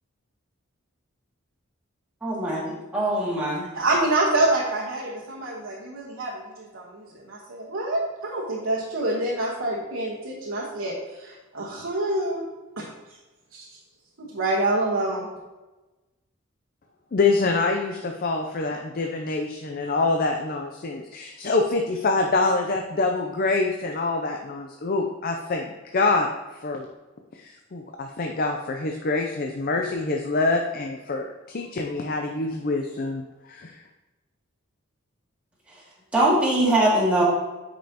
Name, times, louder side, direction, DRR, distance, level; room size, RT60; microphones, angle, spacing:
voice 1, 2.2-3.7 36.1-37.2, right 1 dB, 5° right, -7 dB, 1.9 m, -22 dB
voice 2, 3.7-12.4 12.8-12.9 13.5-13.6 14.2-15.3, right 2 dB, 80° right, -5 dB, 1.3 m, -26 dB
voice 3, 17.1-26.3 26.6-26.9 27.4-33.8, left 3 dB, 45° left, 3 dB, 0.5 m, -25 dB
8.8 x 5.2 x 2.9 m, 1.1 s
head